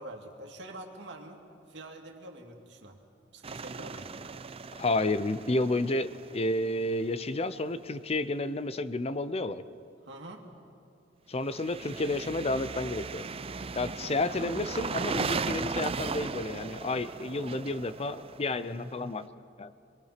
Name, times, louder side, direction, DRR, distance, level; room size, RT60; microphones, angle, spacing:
voice 1, 0.0-3.0 3.3-4.1 10.0-10.5, right 1 dB, 70° right, 2 dB, 2.4 m, -45 dB
sound 1, 3.4-7.3 11.4-19.1, right 4 dB, 30° right, 0.5 m, -37 dB
voice 2, 4.8-9.6 11.3-13.2 13.8-19.3 19.6-19.7, left 2 dB, 35° left, 13 dB, 0.6 m, -31 dB
27.5 x 22.0 x 5.9 m, 2.4 s
head